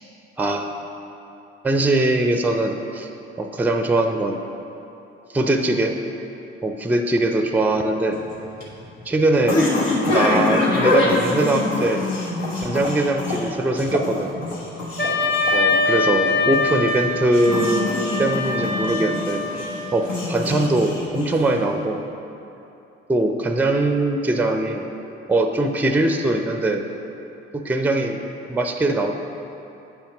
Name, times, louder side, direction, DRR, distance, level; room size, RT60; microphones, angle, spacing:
voice 1, 0.4-0.8 1.6-3.1 3.4-4.4 5.3-6.0 6.6-8.2 9.1-9.7 10.1-12.1 12.6-14.3 15.5-19.4 19.9-22.0 23.1-24.9 25.3-26.9 27.5-28.2 28.5-29.1, right 2 dB, 5° right, 5 dB, 0.5 m, -21 dB
sound 1, 8.1-21.7, left 2 dB, 70° left, 1.2 m, -25 dB
Wind instrument woodwind instrument, 15.0-19.9, left 3 dB, 35° left, 1.1 m, -23 dB
8.3 x 5.6 x 3.0 m, 2.9 s
hypercardioid pair, 45°, 30 cm